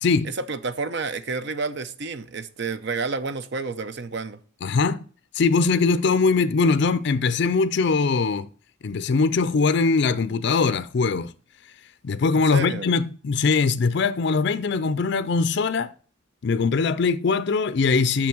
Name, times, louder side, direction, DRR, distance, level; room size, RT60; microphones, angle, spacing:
voice 1, 0.2-4.4 12.3-12.9, right 4 dB, 55° right, 0.7 m, -30 dB
voice 2, 4.6-5.0 5.3-8.5 8.8-11.3 12.0-15.9 16.4-18.3, left 4 dB, 55° left, 0.4 m, -21 dB
6.3 x 6.0 x 6.1 m
head